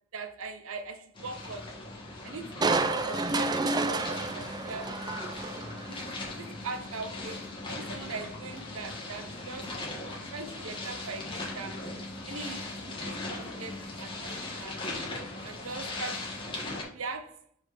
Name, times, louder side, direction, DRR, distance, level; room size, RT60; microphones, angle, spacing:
voice 1, 0.1-1.8 2.2-5.1 5.9-9.7 10.3-11.8 12.2-14.8 15.4-16.3 16.9-17.4, right 4 dB, 75° right, 0.7 m, -41 dB
sound 1, 1.2-16.8, left 2 dB, 25° left, 1.3 m, -39 dB
Crushing, 2.6-6.0 6.4-6.5, right 3 dB, 20° right, 0.3 m, -30 dB
5.0 x 4.2 x 4.8 m
head